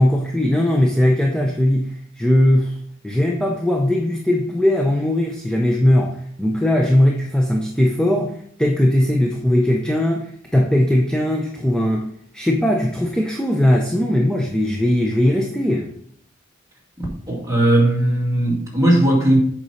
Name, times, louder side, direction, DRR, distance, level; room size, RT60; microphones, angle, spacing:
voice 1, 0.0-2.7 3.0-12.1 12.3-15.9, left 1 dB, 5° left, 0 dB, 0.6 m, -19 dB
voice 2, 17.0-19.4, right 1 dB, 15° right, -4 dB, 2.4 m, -18 dB
8.0 x 5.2 x 4.3 m, 0.65 s
head